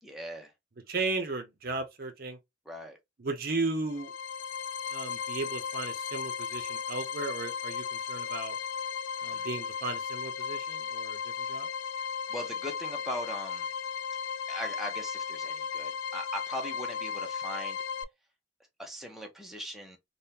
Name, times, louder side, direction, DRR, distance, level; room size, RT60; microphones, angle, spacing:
voice 1, 0.0-0.5 2.7-3.0 9.2-9.5 12.3-13.7 14.5-17.8 18.8-20.0, equal, ahead, 0.6 m, -40 dB
voice 2, 0.9-2.4 3.2-4.1 4.9-8.6 9.2-11.7, right 3 dB, 50° right, 0.6 m, -35 dB
sound 1, 3.9-18.0, left 6 dB, 80° left, 0.3 m, -36 dB
3.5 x 2.2 x 2.7 m
head